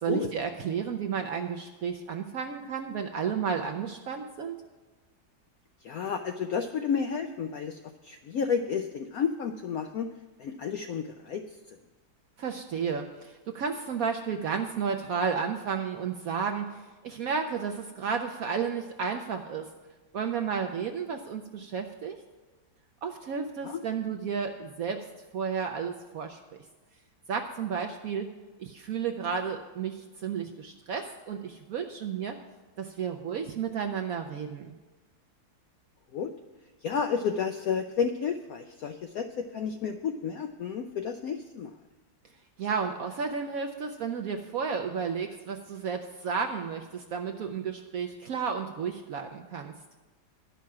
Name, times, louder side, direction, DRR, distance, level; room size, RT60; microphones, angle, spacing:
voice 1, 0.0-4.6 12.4-19.7 20.1-22.2 23.0-25.0 25.3-26.4 27.3-28.3 28.6-32.4 32.8-34.8 42.6-49.7, right 6 dB, 70° right, 5 dB, 0.8 m, -32 dB
voice 2, 5.8-10.1 10.4-11.6 23.6-23.8 36.1-36.3 36.8-41.7, left 6 dB, 80° left, 7 dB, 0.8 m, -31 dB
11.5 x 5.7 x 7.3 m, 1.2 s
omnidirectional pair, 2.1 m